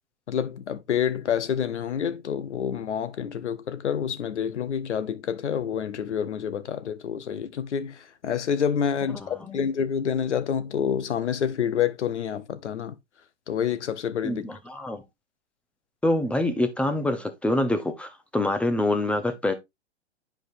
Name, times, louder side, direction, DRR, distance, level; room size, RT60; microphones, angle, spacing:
voice 1, 0.3-12.9 13.5-14.4, left 8 dB, 90° left, 1.0 m, -28 dB
voice 2, 9.1-9.6 14.2-15.0 16.0-19.5, left 1 dB, 5° left, 0.6 m, -26 dB
9.1 x 5.0 x 2.6 m
hypercardioid pair, 130°, 34 cm